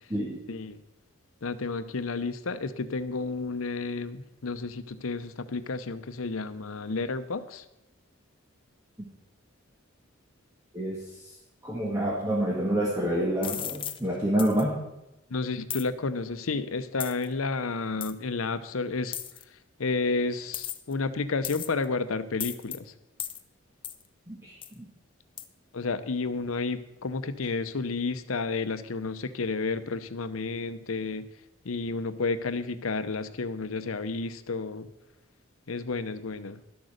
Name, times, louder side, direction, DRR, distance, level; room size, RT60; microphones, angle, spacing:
voice 1, 1.4-7.6 15.3-19.1 19.8-22.9 25.7-31.2 31.6-34.9 35.7-36.6, left 3 dB, 90° left, 12 dB, 0.8 m, -31 dB
voice 2, 11.6-14.8 24.3-24.5 24.8-24.9, right 1 dB, 15° right, -3 dB, 1.6 m, -27 dB
sound 1, 13.4-14.0 14.4-14.6 15.7-15.9 17.0-17.2 18.0-18.1 19.1-19.4 20.5-20.9 21.4-21.8 22.4-22.8 23.2-23.4 23.8-24.0 24.6-24.7 25.4-25.5, left 10 dB, 25° left, 0.6 m, -35 dB
12.0 x 8.1 x 6.5 m, 0.90 s
head